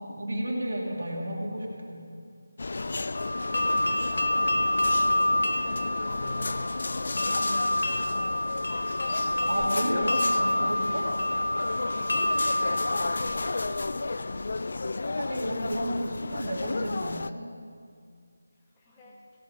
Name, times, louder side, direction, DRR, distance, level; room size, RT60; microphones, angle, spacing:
voice 1, 0.0-2.0 9.5-11.0 15.2-17.4, right 1 dB, 65° right, -1 dB, 2.7 m, -32 dB
sound 1, 2.6-17.3, left 3 dB, 55° left, 0.3 m, -33 dB
sound 2, 3.2-14.0, left 1 dB, 70° left, 1.1 m, -28 dB
voice 2, 4.0-4.8 5.5-8.3 11.9-14.4 18.7-19.2, left 1 dB, 15° left, -3 dB, 1.2 m, -49 dB
16.5 x 8.3 x 5.0 m, 2.3 s
figure-of-eight pair, 160°, 0 cm